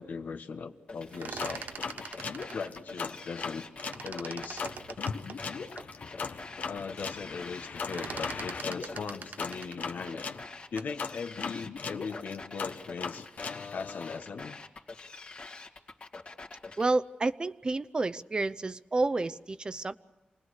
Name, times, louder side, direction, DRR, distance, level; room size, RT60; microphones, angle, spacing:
voice 1, 0.0-1.6 2.5-3.7 4.0-4.7 5.1-5.2 6.6-10.3 10.7-13.3 13.7-14.6, left 5 dB, 80° left, 7 dB, 1.5 m, -39 dB
sound 1, 0.9-16.9, left 3 dB, 45° left, 2.1 m, -46 dB
sound 2, 1.0-3.5 3.8-5.9 6.4-6.5 6.8-7.2 7.5-11.0, right 6 dB, 80° right, 0.7 m, -44 dB
sound 3, 1.4-4.0 4.6-10.4 11.0-14.2, left 5 dB, 65° left, 1.2 m, -38 dB
voice 2, 16.8-19.9, right 3 dB, 30° right, 15 dB, 0.7 m, -30 dB
28.0 x 20.0 x 6.5 m, 1.2 s
wide cardioid pair, 125°, 3 cm